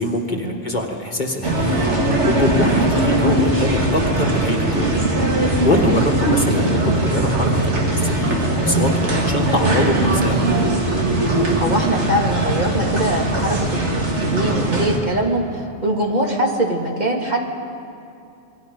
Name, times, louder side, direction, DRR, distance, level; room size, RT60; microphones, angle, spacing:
voice 1, 0.0-4.9 5.6-10.7, left 2 dB, 40° left, 1 dB, 1.7 m, -24 dB
sound 1, 1.4-15.0, right 2 dB, 70° right, 2.5 m, -20 dB
voice 2, 11.5-17.5, right 1 dB, 35° right, 0 dB, 2.3 m, -22 dB
27.5 x 21.5 x 5.3 m, 2.5 s
omnidirectional pair, 1.2 m